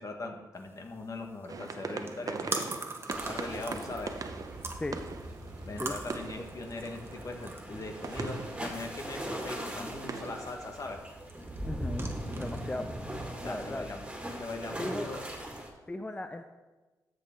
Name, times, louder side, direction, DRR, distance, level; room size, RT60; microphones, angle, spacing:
voice 1, 0.0-2.7 3.1-4.2 5.6-11.0 13.4-14.0 14.4-15.2, left 2 dB, 50° left, 3 dB, 1.7 m, -40 dB
sound 1, 0.6-13.3, right 2 dB, 35° right, 1.3 m, -44 dB
sound 2, 1.5-10.6, right 4 dB, 55° right, 0.8 m, -42 dB
sound 3, 3.1-15.7, right 1 dB, 15° right, 2.3 m, -40 dB
voice 2, 11.7-12.1 12.4-12.9 13.4-13.9 14.8-15.1 15.9-16.4, left 2 dB, 15° left, 7 dB, 0.5 m, -36 dB
13.5 x 6.4 x 3.8 m, 1.2 s
cardioid pair, 70°, 7 cm